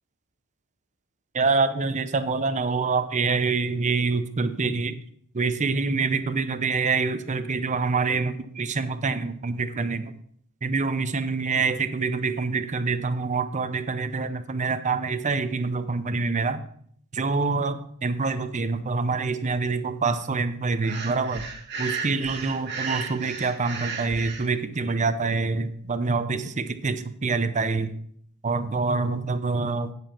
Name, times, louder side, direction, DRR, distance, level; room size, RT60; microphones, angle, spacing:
voice 1, 1.3-5.0 5.3-10.1 10.6-16.6 17.1-21.4 21.8-27.9 28.4-29.9, right 4 dB, 35° right, 11 dB, 0.6 m, -26 dB
Breathing, 20.8-24.5, right 4 dB, 50° right, 1.3 m, -34 dB
9.2 x 7.7 x 4.4 m, 0.64 s
head